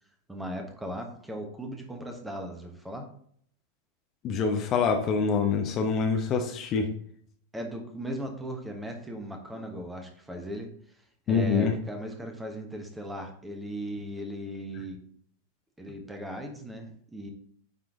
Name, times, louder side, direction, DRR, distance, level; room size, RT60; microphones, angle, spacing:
voice 1, 0.3-3.0 7.5-10.7 11.3-15.0 15.8-17.3, equal, 5° right, 3 dB, 1.3 m, -37 dB
voice 2, 4.2-6.9 11.3-11.8, left 5 dB, 35° left, 3 dB, 0.9 m, -25 dB
9.3 x 3.8 x 3.7 m, 0.62 s
figure-of-eight pair, 90°, 0 cm